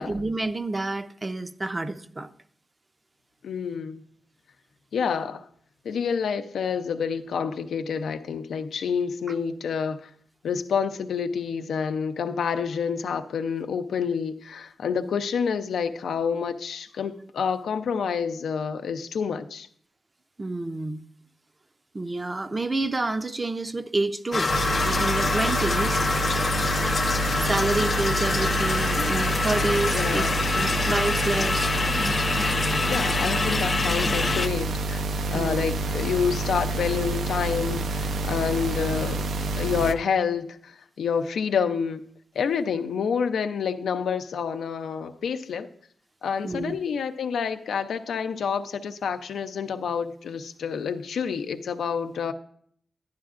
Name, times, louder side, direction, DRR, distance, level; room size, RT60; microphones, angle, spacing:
voice 1, 0.0-2.3 20.4-21.0 21.9-24.5 24.9-26.0 27.4-30.3 30.5-31.7 35.3-35.7 46.4-46.8, right 2 dB, 25° right, 0.5 m, -28 dB
voice 2, 3.4-4.0 4.9-5.4 5.8-10.1 10.4-19.7 29.9-30.4 32.8-35.1 35.3-39.3 39.6-42.0 42.3-45.7 46.2-52.3, left 6 dB, 90° left, 0.5 m, -28 dB
sound 1, 24.3-34.5, left 3 dB, 35° left, 0.3 m, -25 dB
sound 2, 24.5-39.9, right 2 dB, 80° right, 0.5 m, -28 dB
11.0 x 10.5 x 2.5 m
wide cardioid pair, 110°, 0 cm